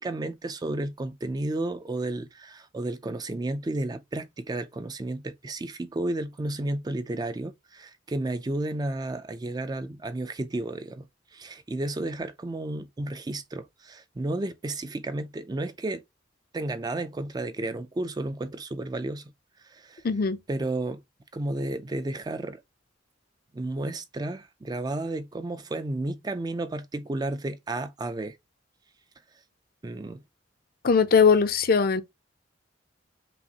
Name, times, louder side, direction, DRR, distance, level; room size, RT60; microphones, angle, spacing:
voice 1, 0.0-11.0 11.3-16.0 16.5-19.3 19.7-20.0 20.5-21.0 21.3-22.6 23.5-28.4 29.8-30.2, right 2 dB, 20° right, 0.3 m, -32 dB
voice 2, 20.0-20.4 30.8-32.0, left 5 dB, 50° left, 0.5 m, -20 dB
5.4 x 2.4 x 2.8 m
head